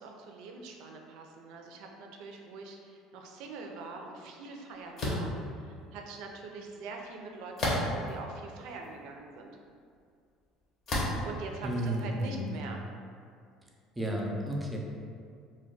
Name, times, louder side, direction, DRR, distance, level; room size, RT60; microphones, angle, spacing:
voice 1, 0.0-9.5 11.2-12.8, right 3 dB, 75° right, 2 dB, 0.4 m, -44 dB
sound 1, 5.0-5.3 7.6-8.1 8.8-8.9 10.9-11.3, left 1 dB, 45° left, 0.7 m, -30 dB
voice 2, 11.6-12.5 14.0-14.8, equal, 10° right, -1 dB, 0.5 m, -32 dB
2.3 x 2.1 x 3.8 m, 2.3 s
supercardioid pair, 115°, 0 cm